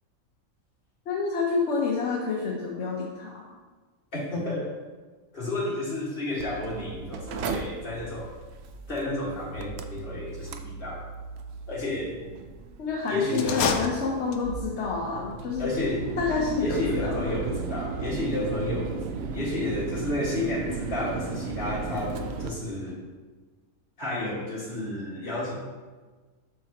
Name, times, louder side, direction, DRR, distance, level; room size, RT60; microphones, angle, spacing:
voice 1, 1.1-3.4 12.8-15.7 16.2-17.3, left 4 dB, 55° left, -2 dB, 1.1 m, -28 dB
voice 2, 4.1-4.8 5.3-8.3 8.9-11.0 11.7-12.2 13.1-13.6 15.6-16.1 16.6-19.0 19.3-23.0 24.0-25.5, left 2 dB, 40° left, -6 dB, 2.0 m, -31 dB
Mechanical fan, 6.4-22.5, right 5 dB, 65° right, 0.7 m, -36 dB
sound 1, 13.3-14.7, left 5 dB, 90° left, 1.1 m, -28 dB
7.7 x 5.8 x 2.9 m, 1.3 s
omnidirectional pair, 1.5 m